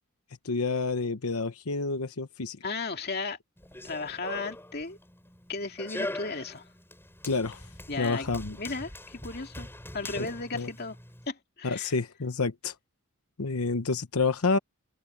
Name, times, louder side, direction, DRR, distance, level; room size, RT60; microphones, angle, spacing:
voice 1, 0.4-2.6 7.2-7.7 8.0-8.6 10.2-10.3 10.5-10.7 11.6-12.7 13.4-14.6, left 4 dB, 90° left, 1.0 m, -29 dB
voice 2, 2.6-3.4 3.8-5.0 5.5-6.6 7.9-8.3 8.6-9.7 9.9-11.0 11.3-11.9, left 3 dB, 45° left, 2.5 m, -35 dB
Run, 3.6-11.3, left 1 dB, 10° left, 7.8 m, -42 dB
open air
head